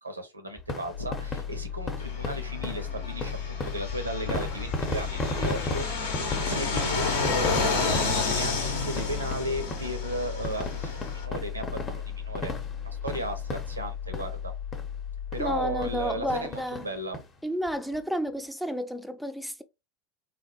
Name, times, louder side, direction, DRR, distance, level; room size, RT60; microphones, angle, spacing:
voice 1, 0.0-12.5 12.8-14.5 15.3-17.2, right 1 dB, 85° right, 0.6 m, -35 dB
sound 1, 0.6-14.5 14.7-14.9 15.3-15.4 15.8-16.0 16.3-17.3 17.7-17.8 17.9-18.0, left 2 dB, 25° left, 0.7 m, -36 dB
sound 2, 0.9-16.7, left 9 dB, 85° left, 0.4 m, -36 dB
Fixed-wing aircraft airplane, 2.0-11.3, left 4 dB, 65° left, 0.8 m, -31 dB
voice 2, 15.4-16.8 17.4-19.6, equal, ahead, 0.3 m, -31 dB
3.3 x 2.3 x 2.7 m
figure-of-eight pair, 75°, 0 cm